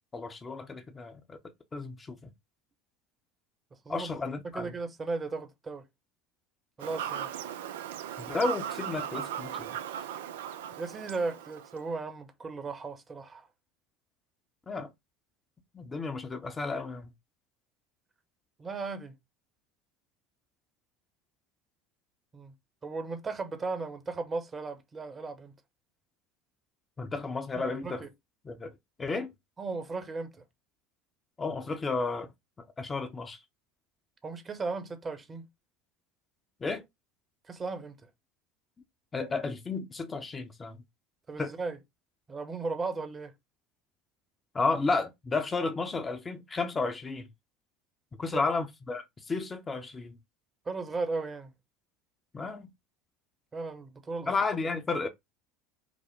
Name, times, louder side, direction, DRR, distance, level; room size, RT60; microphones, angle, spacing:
voice 1, 0.1-1.4 1.7-2.0 2.2-2.3 3.9-4.7 8.2-9.6 14.7-14.9 15.7-17.1 27.0-28.0 28.4-28.7 29.0-29.3 31.4-32.3 32.8-33.4 36.6-36.8 39.1-40.8 41.4-41.5 44.5-47.3 48.2-50.2 52.3-52.7 54.3-55.1, left 3 dB, 20° left, 0.8 m, -32 dB
voice 2, 4.4-5.8 6.8-7.3 10.8-13.5 18.6-19.1 22.3-22.5 22.8-25.5 27.5-28.1 29.6-30.4 34.2-35.5 37.5-38.0 41.3-41.8 42.3-43.3 48.3-48.5 50.6-51.5 53.5-54.3, right 3 dB, 25° right, 0.9 m, -36 dB
Fowl / Bird vocalization bird call bird song, 6.8-11.8, right 9 dB, 65° right, 0.3 m, -37 dB
5.1 x 2.1 x 3.6 m
figure-of-eight pair, 70°, 0 cm